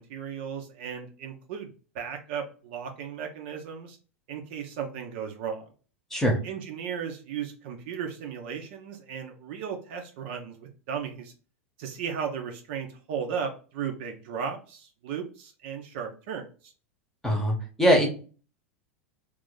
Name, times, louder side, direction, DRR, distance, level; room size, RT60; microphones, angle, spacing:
voice 1, 0.0-4.0 4.3-5.6 6.4-11.3 11.8-16.7, right 7 dB, 55° right, 4 dB, 0.7 m, -35 dB
voice 2, 17.2-18.2, equal, 5° left, 1 dB, 1.0 m, -22 dB
2.9 x 2.5 x 3.8 m, 0.37 s
figure-of-eight pair, 85°, 7 cm